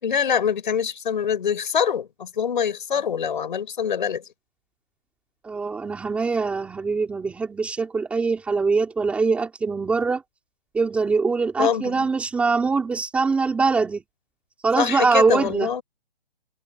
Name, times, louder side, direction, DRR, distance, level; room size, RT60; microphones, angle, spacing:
voice 1, 0.0-4.2 11.6-12.1 14.8-15.8, left 7 dB, 55° left, 5.3 m, -24 dB
voice 2, 5.4-10.2 10.7-14.0 14.6-15.7, right 4 dB, 5° right, 3.2 m, -23 dB
hypercardioid pair, 175°, 30 cm